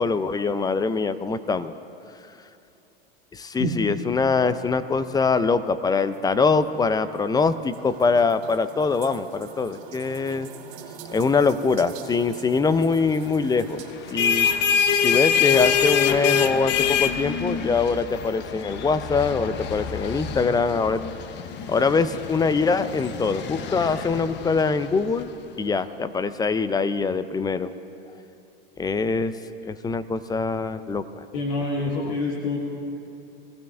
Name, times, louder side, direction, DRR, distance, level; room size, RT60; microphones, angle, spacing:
voice 1, 0.0-1.7 3.3-10.5 11.1-13.8 14.1-14.5 15.0-21.0 21.7-25.3 25.6-27.7 28.8-29.3 29.6-31.1, left 4 dB, 15° left, 13 dB, 0.5 m, -23 dB
sound 1, 6.1-15.7, right 7 dB, 60° right, 2.3 m, -44 dB
sound 2, 13.9-25.2, left 7 dB, 40° left, 0.8 m, -25 dB
voice 2, 31.3-32.6, left 2 dB, 65° left, -2 dB, 2.0 m, -26 dB
22.5 x 15.5 x 3.4 m, 2.9 s
hypercardioid pair, 105°, 29 cm